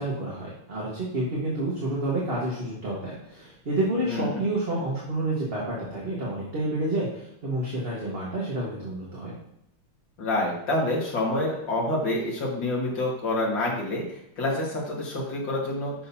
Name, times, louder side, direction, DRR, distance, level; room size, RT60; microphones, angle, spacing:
voice 1, 0.0-9.4, right 1 dB, 30° right, -5 dB, 1.7 m, -29 dB
voice 2, 4.1-4.4 10.2-15.9, left 1 dB, 60° left, -2 dB, 2.6 m, -27 dB
10.5 x 6.4 x 2.8 m, 0.77 s
omnidirectional pair, 2.3 m